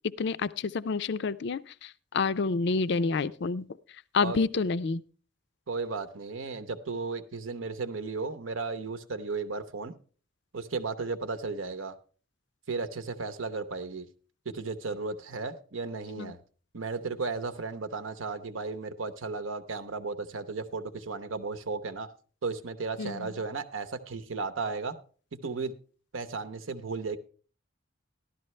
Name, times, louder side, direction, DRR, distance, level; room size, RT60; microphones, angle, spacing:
voice 1, 0.2-3.7 4.1-5.0 16.2-16.3 23.0-23.3, left 4 dB, 60° left, 16 dB, 0.4 m, -29 dB
voice 2, 5.7-9.9 10.5-11.9 12.7-14.1 14.4-16.4 16.7-22.1 22.4-25.0 25.3-25.7 26.1-27.2, right 4 dB, 75° right, 10 dB, 0.9 m, -34 dB
14.0 x 11.5 x 3.2 m, 0.40 s
head